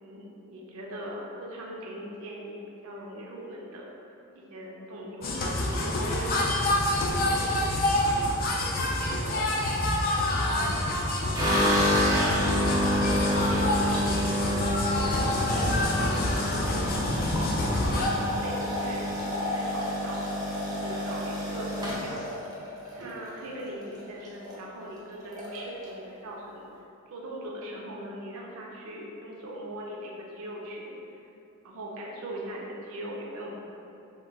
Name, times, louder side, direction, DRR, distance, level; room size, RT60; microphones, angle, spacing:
voice 1, 0.0-3.9 4.3-5.3 5.6-8.5 9.0-9.5 10.2-10.9 11.1-16.9 17.7-20.2 20.6-22.2 22.9-26.7 27.1-31.0 31.6-33.5, right 1 dB, 70° right, -2 dB, 0.5 m, -40 dB
sound 1, 5.2-18.1, left 1 dB, 40° left, 0.3 m, -27 dB
sound 2, 11.3-23.6 23.9-24.6 24.8-24.9 25.2-25.9, equal, 15° right, 0.5 m, -29 dB
2.2 x 2.1 x 3.8 m, 2.8 s
head